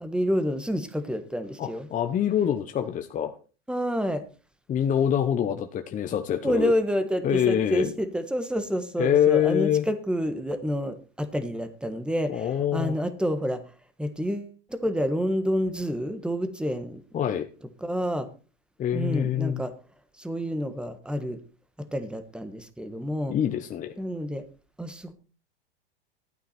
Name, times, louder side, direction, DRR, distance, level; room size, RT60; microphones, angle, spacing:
voice 1, 0.0-1.9 3.7-4.2 6.4-13.6 14.0-17.3 17.8-18.3 18.9-19.7 20.2-21.4 21.8-23.3 24.0-24.5 24.8-25.1, equal, 5° right, 10 dB, 1.3 m, -28 dB
voice 2, 1.6-3.3 4.7-6.7 7.2-7.9 9.0-9.9 12.3-12.9 17.1-17.5 18.8-19.6 23.3-23.9, left 9 dB, 25° left, 7 dB, 0.8 m, -25 dB
12.0 x 9.0 x 4.3 m, 0.36 s
hypercardioid pair, 110°, 31 cm